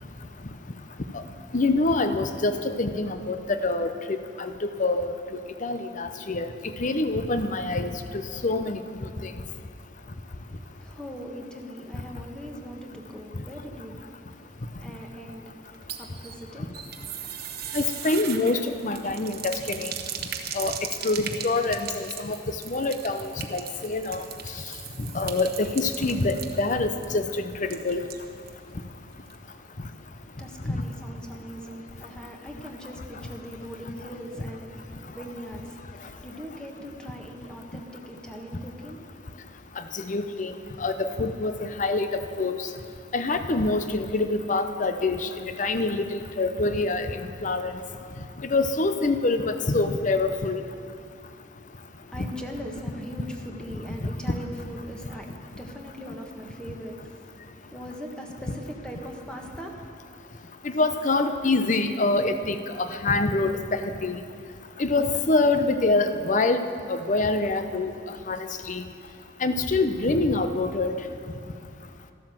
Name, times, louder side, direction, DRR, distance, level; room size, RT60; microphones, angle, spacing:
voice 1, 0.3-1.0 10.3-16.7 17.1-17.7 29.4-39.0 52.1-59.7, equal, 5° left, 1 dB, 1.5 m, -41 dB
voice 2, 1.5-2.5 2.8-4.5 4.8-5.1 5.6-6.5 6.8-7.9 8.4-8.8 17.7-19.9 20.6-20.7 21.0-22.4 22.7-24.2 25.1-27.2 27.6-28.0 40.1-40.5 40.8-41.5 41.8-42.1 42.4-42.6 43.1-45.2 45.6-47.8 48.5-50.6 60.7-63.5 64.0-64.2 64.8-66.6 66.9-67.9 68.3-68.8 69.4-71.0, left 3 dB, 45° left, 9 dB, 0.8 m, -25 dB
sound 1, 15.7-28.6 28.9-29.0 29.3-29.4, right 8 dB, 55° right, 1.1 m, -38 dB
13.5 x 12.0 x 7.6 m, 2.4 s
head